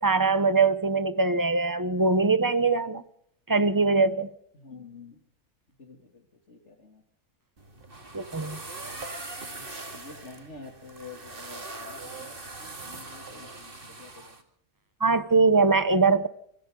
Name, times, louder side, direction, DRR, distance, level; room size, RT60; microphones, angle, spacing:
voice 1, 0.0-3.0 3.5-4.3 8.1-8.6 15.0-16.3, right 3 dB, 20° right, 0.7 m, -22 dB
voice 2, 4.5-5.2 5.8-7.0 9.3-14.4, left 4 dB, 45° left, 3.2 m, -48 dB
sound 1, 7.6-14.4, right 2 dB, 35° right, 2.5 m, -41 dB
26.5 x 25.0 x 3.9 m
omnidirectional pair, 1.6 m